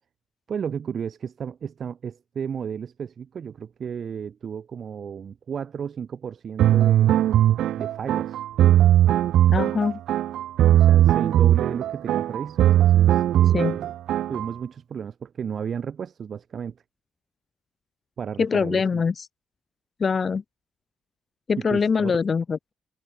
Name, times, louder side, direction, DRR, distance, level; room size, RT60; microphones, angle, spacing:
voice 1, 0.5-7.2 7.8-8.4 10.7-13.9 14.3-16.8 18.2-19.0 21.7-22.1, right 7 dB, 50° right, 6.3 m, -33 dB
sound 1, 6.6-14.5, right 12 dB, 80° right, 0.5 m, -19 dB
voice 2, 9.5-10.0 13.5-13.8 18.4-19.3 20.0-20.4 21.5-22.7, left 5 dB, 40° left, 1.8 m, -23 dB
cardioid pair, 90°, 0 cm